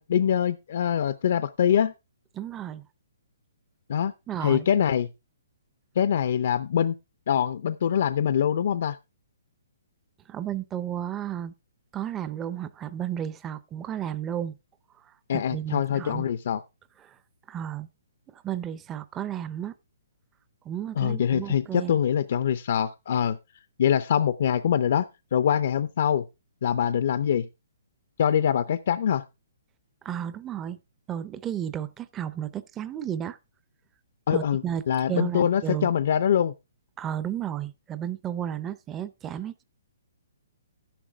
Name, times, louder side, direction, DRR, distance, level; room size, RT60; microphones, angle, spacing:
voice 1, 0.0-1.9 3.9-4.1 4.4-5.1 6.0-6.9 7.3-9.0 15.3-16.6 21.0-23.4 23.8-25.1 25.3-26.2 26.6-27.5 28.2-29.2 34.3-36.5, left 9 dB, 40° left, 0.6 m, -24 dB
voice 2, 2.3-2.8 4.3-4.7 10.3-11.5 11.9-14.6 15.3-16.3 17.0-17.2 17.5-17.9 18.3-19.7 20.6-21.9 30.0-30.8 31.1-33.4 34.3-34.8 35.1-35.9 37.0-39.6, right 10 dB, 10° right, 0.5 m, -33 dB
12.0 x 10.0 x 3.5 m
hypercardioid pair, 175°, 0 cm